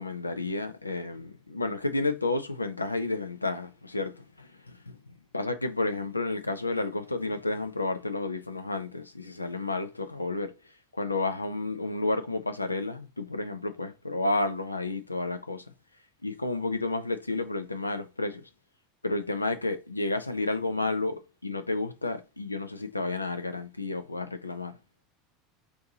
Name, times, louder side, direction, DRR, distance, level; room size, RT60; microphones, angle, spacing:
voice 1, 0.0-5.0 5.3-10.5 10.9-15.6 16.2-18.5 19.0-24.8, left 2 dB, 85° left, 0.4 m, -31 dB
4.4 x 2.7 x 2.7 m
figure-of-eight pair, 75°, 0 cm